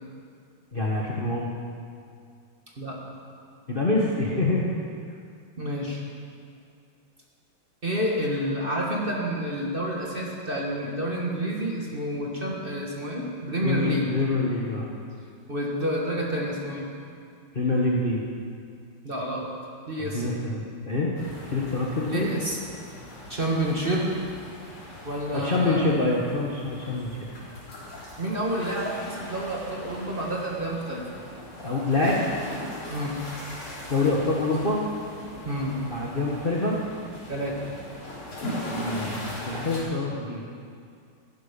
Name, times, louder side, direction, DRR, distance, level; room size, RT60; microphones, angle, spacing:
voice 1, 0.7-1.5 3.7-4.6 13.6-14.9 17.5-18.2 20.0-21.1 21.5-22.3 25.3-27.1 31.6-32.2 33.9-34.8 35.9-36.8 38.7-40.5, left 2 dB, 30° left, -3 dB, 1.2 m, -26 dB
voice 2, 5.6-6.0 7.8-14.1 15.5-16.9 19.0-19.5 19.9-20.2 22.1-22.6 23.3-24.1 25.0-25.9 28.2-31.0 32.9-33.2 35.4-35.8 37.3-37.7, right 1 dB, 30° right, -3 dB, 1.7 m, -29 dB
sound 1, 21.2-39.8, left 1 dB, 85° left, 4.7 m, -40 dB
14.5 x 11.5 x 5.3 m, 2.3 s
omnidirectional pair, 2.3 m